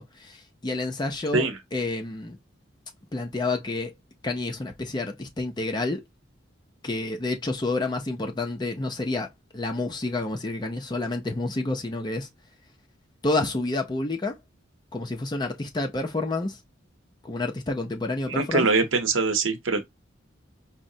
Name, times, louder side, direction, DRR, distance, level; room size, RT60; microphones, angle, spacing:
voice 1, 0.0-2.4 3.1-3.9 4.2-6.0 6.8-9.3 9.5-12.3 13.2-14.4 14.9-16.6 17.2-18.7, left 2 dB, 20° left, 0.5 m, -29 dB
voice 2, 18.3-19.8, right 4 dB, 85° right, 0.8 m, -23 dB
4.7 x 2.0 x 2.6 m
head